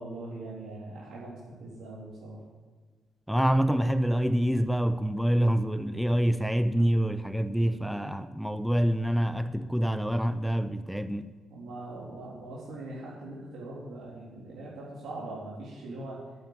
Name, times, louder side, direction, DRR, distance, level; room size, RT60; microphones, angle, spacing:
voice 1, 0.0-2.4 11.5-16.2, right 2 dB, 75° right, -7 dB, 3.6 m, -41 dB
voice 2, 3.3-11.3, equal, ahead, 11 dB, 0.6 m, -26 dB
9.1 x 8.9 x 9.5 m, 1.4 s
cardioid pair, 90°, 0 cm